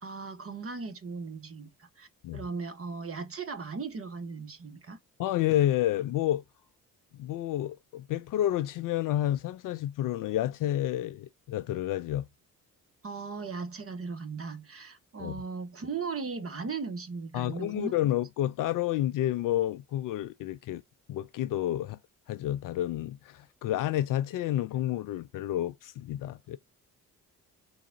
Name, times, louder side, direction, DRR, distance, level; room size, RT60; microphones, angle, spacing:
voice 1, 0.0-5.0 13.0-17.9, right 4 dB, 30° right, 1.2 m, -37 dB
voice 2, 5.2-6.4 7.2-12.3 15.2-15.4 17.3-20.8 21.1-22.0 22.3-26.6, left 13 dB, 45° left, 0.4 m, -30 dB
3.9 x 3.6 x 2.5 m
figure-of-eight pair, 40°, 47 cm